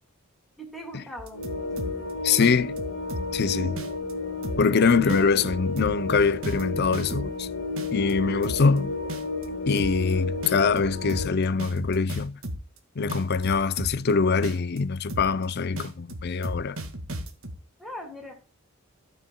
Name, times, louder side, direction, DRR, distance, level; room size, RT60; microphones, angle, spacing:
voice 1, 0.6-1.5 5.0-5.2 17.8-18.4, equal, ahead, 2.8 m, -39 dB
sound 1, 1.2-2.1 2.4-3.4 3.8-4.1 4.4-4.8 5.1-7.4 7.8-8.8 9.1-9.4 9.8-10.1 10.4-12.8 13.1-14.1 14.4-14.8 15.1-15.4 15.8-17.6, right 1 dB, 75° right, 1.8 m, -35 dB
sound 2, 1.3-11.3, left 3 dB, 75° left, 2.8 m, -32 dB
voice 2, 2.2-2.7 3.3-3.8 4.6-7.5 7.9-8.9 9.7-12.4 13.0-16.8, left 5 dB, 50° left, 0.5 m, -23 dB
16.0 x 6.6 x 2.2 m
head